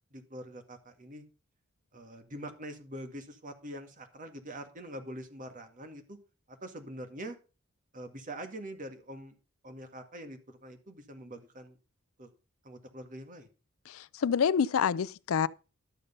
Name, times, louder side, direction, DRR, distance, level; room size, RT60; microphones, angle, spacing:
voice 1, 0.1-1.2 1.9-6.2 6.5-7.4 7.9-9.4 9.6-11.8 12.2-12.3 12.6-13.5, right 1 dB, 40° right, 2.0 m, -44 dB
voice 2, 13.9-15.5, left 7 dB, 85° left, 0.4 m, -27 dB
12.0 x 6.7 x 5.4 m
head